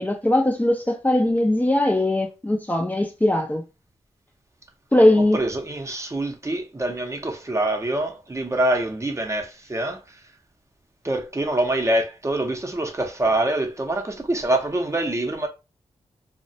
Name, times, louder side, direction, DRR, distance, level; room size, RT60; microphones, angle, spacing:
voice 1, 0.0-3.6 4.9-5.4, left 1 dB, 15° left, 0.5 m, -20 dB
voice 2, 5.3-10.2 11.0-15.5, right 1 dB, 25° right, 0.6 m, -25 dB
2.3 x 2.1 x 2.6 m
cardioid pair, 45°, 12 cm